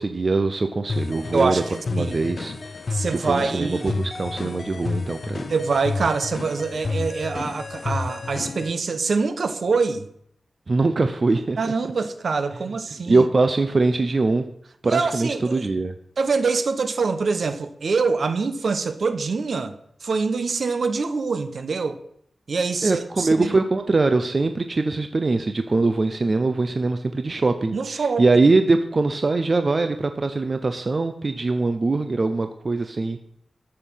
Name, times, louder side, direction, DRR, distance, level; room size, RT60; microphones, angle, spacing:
voice 1, 0.0-1.6 1.9-2.7 3.1-5.4 10.7-11.6 13.0-14.5 14.8-15.9 22.8-33.2, right 3 dB, 40° right, 0.7 m, -22 dB
sound 1, 0.9-8.7, left 3 dB, 50° left, 0.7 m, -30 dB
voice 2, 1.3-1.6 2.0-2.2 2.9-3.8 5.5-10.1 11.6-13.3 14.8-15.6 16.2-19.8 20.0-22.0 22.5-23.6 27.7-28.3, right 4 dB, 65° right, 1.1 m, -24 dB
13.5 x 6.7 x 5.7 m
wide cardioid pair, 135°, 0 cm